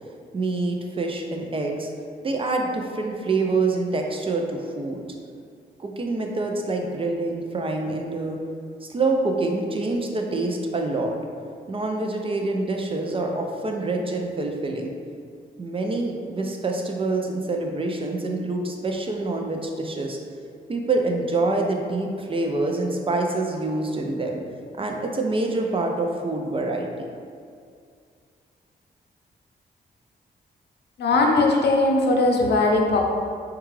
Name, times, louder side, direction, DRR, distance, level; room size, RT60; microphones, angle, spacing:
voice 1, 0.3-1.9 2.2-5.0 5.8-8.4 8.8-11.2 11.7-14.9 15.6-20.2 20.7-24.4 24.8-27.1, right 2 dB, 30° right, 2 dB, 0.5 m, -26 dB
voice 2, 31.0-33.0, left 2 dB, 80° left, 1 dB, 0.6 m, -19 dB
4.6 x 2.3 x 3.1 m, 2.2 s
cardioid pair, 75°, 17 cm